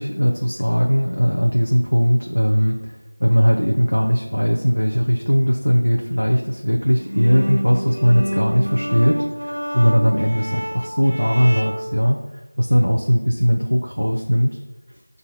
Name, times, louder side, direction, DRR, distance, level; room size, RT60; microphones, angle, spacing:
voice 1, 0.0-2.7 3.2-9.2 9.4-12.2 12.6-14.6, equal, 85° left, 0 dB, 0.8 m, -19 dB
sound 1, 7.0-12.0, equal, 60° right, 0.5 m, -28 dB
8.2 x 2.7 x 5.6 m, 1.1 s
figure-of-eight pair, 180°, 0 cm